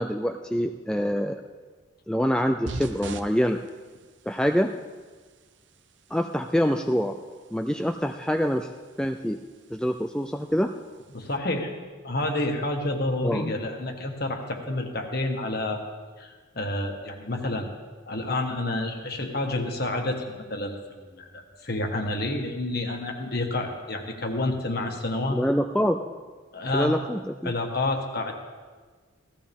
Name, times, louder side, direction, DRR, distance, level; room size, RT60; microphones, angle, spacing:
voice 1, 0.0-1.3 2.1-3.6 4.3-4.7 6.1-7.1 7.5-8.7 9.0-9.4 9.7-10.7 13.2-13.5 25.3-26.0 26.7-27.5, equal, 5° left, 5 dB, 0.3 m, -25 dB
sound 1, 2.7-11.4, right 2 dB, 65° right, 0.8 m, -44 dB
voice 2, 11.1-11.7 12.0-15.8 16.2-17.7 18.1-20.2 20.5-25.4 26.5-26.9 27.4-28.3, left 2 dB, 50° left, 3 dB, 1.6 m, -29 dB
16.5 x 15.0 x 3.6 m, 1.4 s
head